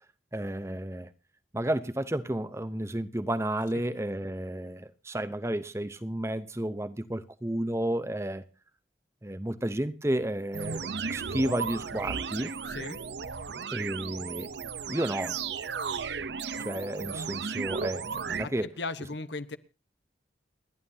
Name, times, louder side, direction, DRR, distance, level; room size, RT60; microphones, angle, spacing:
voice 1, 0.3-1.1 1.5-8.4 9.2-12.6 13.7-14.5 14.9-15.4 16.6-18.7, right 1 dB, 15° right, 0.7 m, -32 dB
sound 1, 10.5-18.4, right 5 dB, 75° right, 0.7 m, -35 dB
voice 2, 12.7-13.0 18.4-19.6, left 3 dB, 80° left, 1.1 m, -37 dB
29.5 x 11.0 x 2.8 m
head